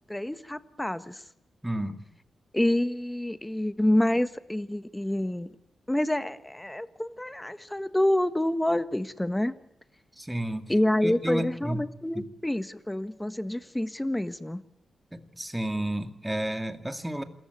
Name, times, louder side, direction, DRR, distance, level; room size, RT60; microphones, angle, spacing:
voice 1, 0.1-1.2 2.5-5.5 5.9-9.5 10.7-14.6, left 1 dB, 10° left, 13 dB, 1.4 m, -27 dB
voice 2, 1.6-2.0 10.2-10.7 11.0-11.8 12.1-12.2 15.1-17.2, right 1 dB, 10° right, 8 dB, 2.4 m, -31 dB
27.0 x 14.5 x 9.7 m, 0.75 s
cardioid pair, 70°, 0 cm